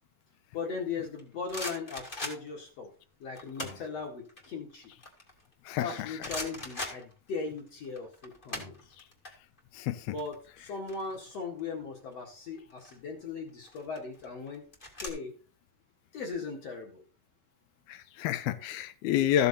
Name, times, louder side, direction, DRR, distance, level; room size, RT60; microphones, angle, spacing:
voice 1, 0.5-2.9 3.2-4.9 5.8-9.0 10.1-14.6 15.0-15.3 16.1-17.0, left 4 dB, 50° left, 2.4 m, -38 dB
sound 1, 1.2-2.7 3.3-3.9 4.3-5.8 6.2-7.6 7.8-9.3 9.6-9.8 10.0-11.6 12.6-13.0 13.6-15.1, left 1 dB, 20° left, 1.5 m, -40 dB
voice 2, 5.7-6.1 9.7-10.1 17.9-19.5, left 11 dB, 80° left, 2.5 m, -29 dB
14.0 x 6.9 x 4.1 m
omnidirectional pair, 4.6 m